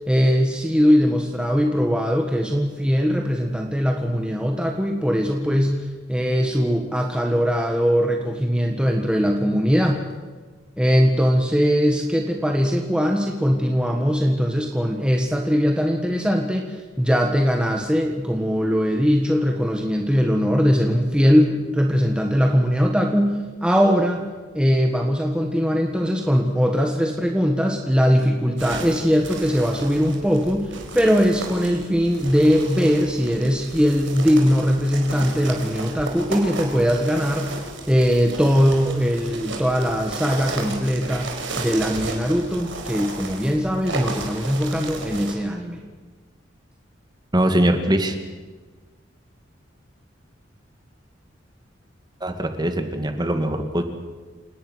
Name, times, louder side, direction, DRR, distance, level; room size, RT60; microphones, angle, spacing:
voice 1, 0.1-10.1 10.8-24.2 24.5-37.6 37.9-45.8, equal, 5° right, 2 dB, 1.5 m, -20 dB
sound 1, 28.6-45.3, right 3 dB, 80° right, 4.4 m, -34 dB
voice 2, 47.3-48.2 52.2-53.8, right 1 dB, 20° right, 7 dB, 2.1 m, -21 dB
29.0 x 18.5 x 6.3 m, 1.4 s
head